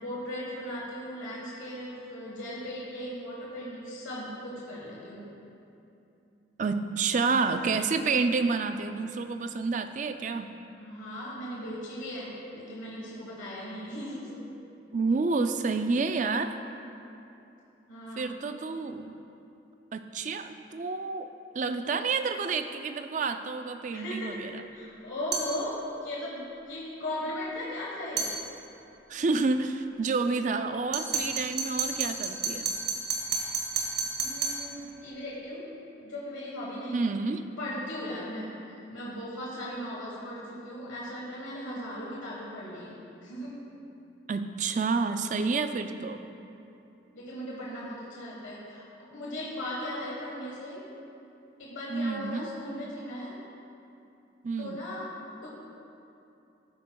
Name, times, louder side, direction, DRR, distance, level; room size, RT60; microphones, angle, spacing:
voice 1, 0.0-5.3 10.8-14.4 17.9-18.3 23.9-24.4 24.7-28.3 33.7-33.8 34.2-35.7 36.0-37.1 37.6-43.6 47.1-50.9 51.6-53.4 54.6-55.1 55.4-55.5, left 1 dB, 90° left, -5 dB, 1.4 m, -38 dB
voice 2, 6.6-10.5 14.9-16.6 18.2-19.1 19.9-24.6 29.1-32.7 36.9-37.4 44.3-46.2 51.9-52.5 54.4-54.8, right 4 dB, 40° right, 8 dB, 0.4 m, -29 dB
sound 1, 25.3-25.6 28.2-28.4 30.9-34.7, right 5 dB, 60° right, 1.4 m, -30 dB
13.5 x 8.7 x 2.3 m, 2.8 s
head